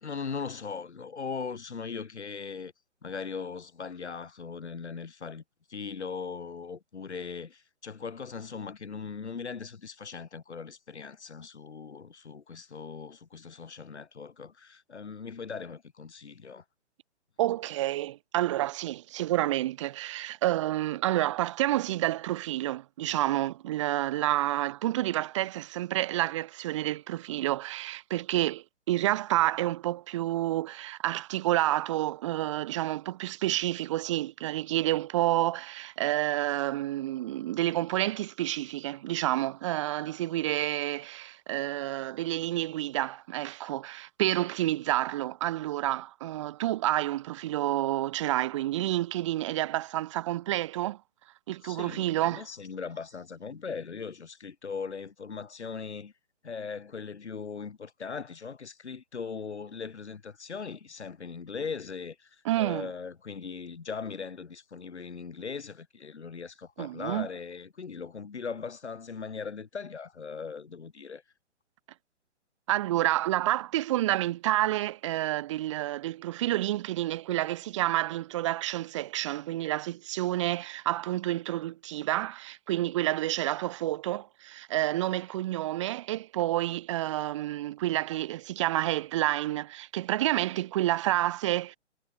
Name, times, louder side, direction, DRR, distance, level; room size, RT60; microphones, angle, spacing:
voice 1, 0.0-2.7 3.0-5.4 5.7-16.6 51.6-56.1 56.4-62.3 62.6-71.2, left 5 dB, 70° left, 1.9 m, -39 dB
voice 2, 17.4-51.0 51.5-52.5 62.4-62.9 66.8-67.3 72.7-91.8, right 15 dB, 25° right, 0.8 m, -29 dB
figure-of-eight pair, 130°, 36 cm